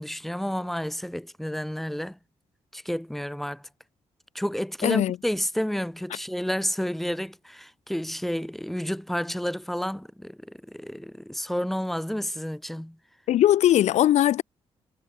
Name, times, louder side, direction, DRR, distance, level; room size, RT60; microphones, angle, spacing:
voice 1, 0.0-2.2 2.7-3.7 4.3-13.0, equal, ahead, 0.8 m, -30 dB
voice 2, 4.8-5.2 13.3-14.4, left 12 dB, 90° left, 1.7 m, -20 dB
wide cardioid pair, 175°, 11 cm